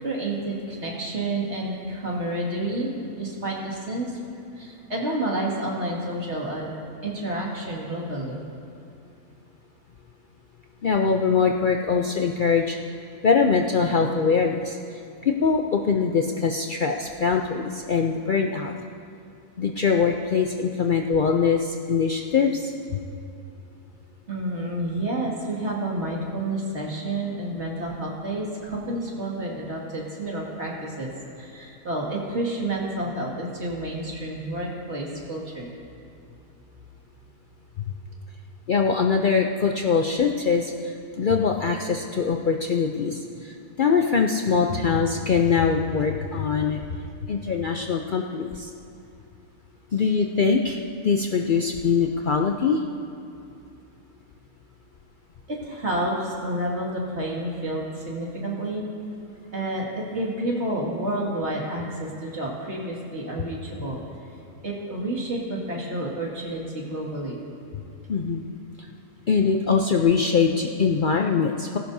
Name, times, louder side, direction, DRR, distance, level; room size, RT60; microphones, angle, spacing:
voice 1, 0.0-4.2 4.6-6.7 7.0-8.4 24.3-31.1 31.4-35.7 55.5-58.8 59.5-64.0 64.6-67.4, right 1 dB, 45° right, -3 dB, 2.4 m, -29 dB
voice 2, 10.8-12.8 13.2-14.8 15.2-18.7 19.6-22.7 38.7-46.8 47.3-48.7 49.9-52.8 68.1-68.4 69.3-71.8, left 5 dB, 90° left, 2 dB, 0.4 m, -22 dB
18.5 x 16.0 x 2.7 m, 2.6 s
omnidirectional pair, 1.6 m